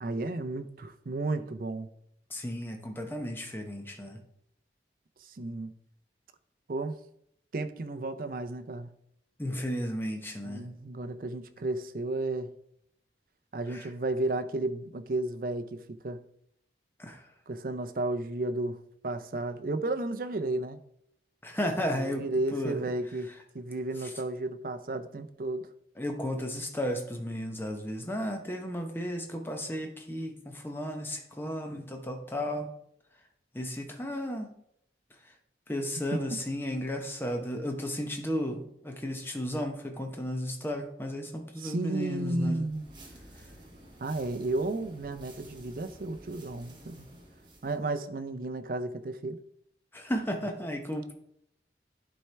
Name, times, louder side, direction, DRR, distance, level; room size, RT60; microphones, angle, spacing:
voice 1, 0.0-1.9 5.3-5.7 6.7-7.0 7.5-8.9 10.4-12.5 13.5-16.2 17.5-18.8 19.0-20.8 22.0-23.3 23.5-25.6 36.1-36.4 41.6-42.9 44.0-47.1 47.6-49.4, right 2 dB, 50° right, 10 dB, 0.5 m, -33 dB
voice 2, 2.3-4.2 9.4-10.6 13.7-13.9 17.0-17.2 21.4-22.2 22.5-22.9 24.0-24.1 26.0-32.7 33.5-34.5 35.7-42.7 49.9-51.1, equal, 10° left, 4 dB, 0.8 m, -34 dB
sound 1, 42.5-47.8, right 1 dB, 25° right, 1.5 m, -51 dB
11.0 x 4.4 x 3.3 m, 0.75 s
head